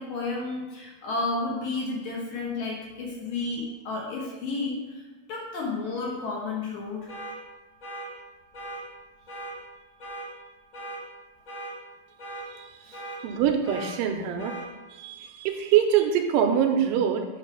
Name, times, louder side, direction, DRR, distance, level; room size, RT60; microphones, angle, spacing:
voice 1, 0.0-5.0 5.3-7.1 12.9-13.0, left 3 dB, 65° left, -2 dB, 1.9 m, -32 dB
sound 1, 7.1-7.3 7.8-8.1 8.5-8.8 9.3-9.5 10.0-10.3 10.7-11.0 11.5-11.7 12.2-12.5 12.9-13.2 13.6-13.9 14.4-14.6, right 1 dB, 40° left, 2.0 m, -38 dB
voice 2, 13.2-14.6 15.0-17.3, right 9 dB, 80° right, 5 dB, 2.1 m, -24 dB
8.3 x 3.3 x 5.6 m, 1.1 s
omnidirectional pair, 4.3 m